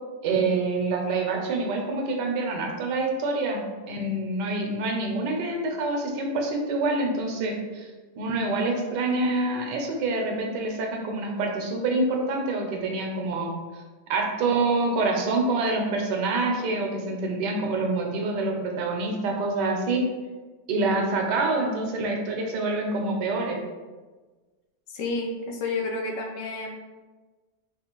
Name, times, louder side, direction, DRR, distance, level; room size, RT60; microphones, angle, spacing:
voice 1, 0.2-7.9 8.2-13.5 14.1-20.0 20.7-23.6, right 3 dB, 85° right, 1 dB, 1.3 m, -26 dB
voice 2, 24.9-26.7, left 3 dB, 85° left, 1 dB, 1.3 m, -30 dB
4.7 x 2.4 x 2.9 m, 1.3 s
omnidirectional pair, 1.8 m